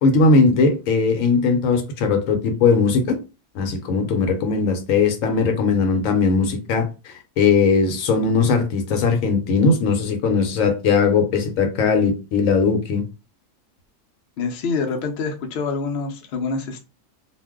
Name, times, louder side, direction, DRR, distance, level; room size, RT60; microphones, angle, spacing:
voice 1, 0.0-3.2 3.5-13.0, left 4 dB, 85° left, 1.0 m, -19 dB
voice 2, 14.4-16.8, left 4 dB, 60° left, 0.8 m, -26 dB
2.5 x 2.1 x 3.5 m
omnidirectional pair, 1.4 m